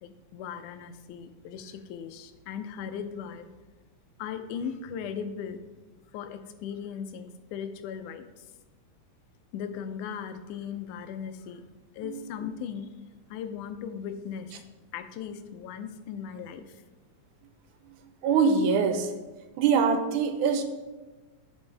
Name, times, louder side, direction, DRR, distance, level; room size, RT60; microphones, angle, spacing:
voice 1, 0.0-3.5 4.2-5.6 6.1-8.4 9.5-11.6 11.9-12.9 13.3-14.6 14.9-16.8, left 7 dB, 85° left, 9 dB, 2.1 m, -38 dB
voice 2, 18.2-19.1 19.6-20.6, right 5 dB, 90° right, 7 dB, 2.2 m, -24 dB
10.5 x 5.2 x 3.3 m, 1.2 s
omnidirectional pair, 3.5 m